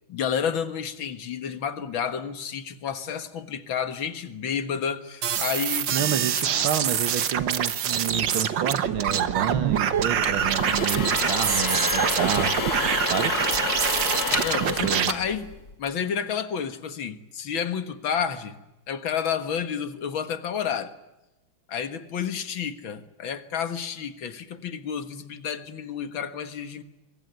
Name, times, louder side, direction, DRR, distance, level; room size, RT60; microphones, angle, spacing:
voice 1, 0.1-5.9 6.5-6.7 14.4-15.5 15.8-18.6 18.9-20.9 21.7-26.8, left 7 dB, 75° left, 10 dB, 2.4 m, -30 dB
sound 1, 5.2-15.1, right 9 dB, 65° right, 1.8 m, -25 dB
voice 2, 5.9-12.6 13.1-13.3 14.6-15.1, right 9 dB, 85° right, 12 dB, 2.2 m, -29 dB
sound 2, 10.0-15.7, left 4 dB, 50° left, 2.9 m, -29 dB
26.0 x 22.5 x 9.4 m, 0.97 s
omnidirectional pair, 2.2 m